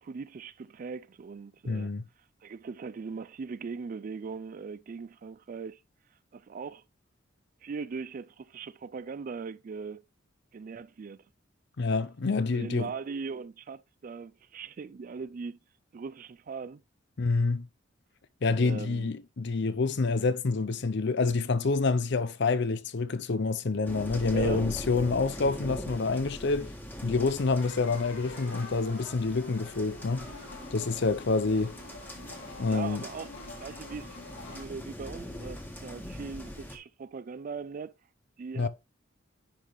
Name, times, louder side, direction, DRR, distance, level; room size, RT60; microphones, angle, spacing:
voice 1, 0.0-1.9 2.4-5.8 6.3-6.8 7.6-10.0 10.5-11.2 12.5-15.6 15.9-16.8 18.6-19.1 24.3-24.7 32.7-33.3 33.6-37.9 38.4-38.7, right 5 dB, 45° right, 0.3 m, -40 dB
voice 2, 1.7-2.0 11.8-12.9 17.2-17.7 18.4-26.7 27.0-30.3 30.7-31.8 32.6-33.0 38.6-38.7, left 3 dB, 60° left, 0.6 m, -27 dB
sound 1, 23.8-36.8, equal, 10° left, 1.5 m, -42 dB
sound 2, 27.6-34.6, left 2 dB, 80° left, 3.4 m, -46 dB
10.5 x 3.6 x 3.0 m
head